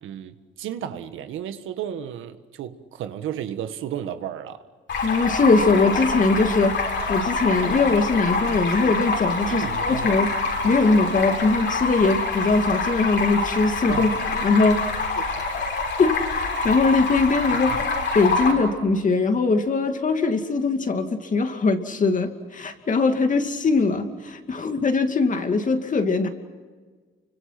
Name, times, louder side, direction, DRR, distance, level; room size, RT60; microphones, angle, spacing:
voice 1, 0.0-4.6 9.4-10.1 13.9-14.2 15.2-15.4 17.5-17.8, right 10 dB, 85° right, 1.6 m, -33 dB
Stream, 4.9-18.5, left 3 dB, 65° left, 6.5 m, -26 dB
voice 2, 5.0-6.7 7.1-10.3 10.6-14.8 16.0-16.1 16.6-17.7 18.1-26.3, left 3 dB, 40° left, 2.5 m, -21 dB
29.5 x 25.0 x 6.0 m
cardioid pair, 90°, 20 cm